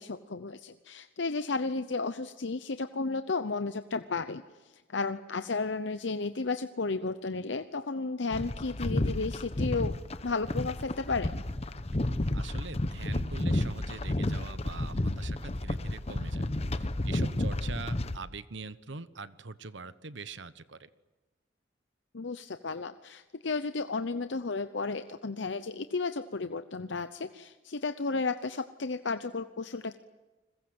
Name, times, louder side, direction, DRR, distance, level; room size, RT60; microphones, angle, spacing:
voice 1, 0.0-9.9 10.2-11.3 22.1-30.0, left 3 dB, 75° left, 10 dB, 0.8 m, -33 dB
sound 1, 8.3-18.2, left 1 dB, 35° left, 1.0 m, -31 dB
voice 2, 12.3-20.9, right 4 dB, 80° right, 14 dB, 1.2 m, -43 dB
30.0 x 21.5 x 7.9 m, 1.2 s
head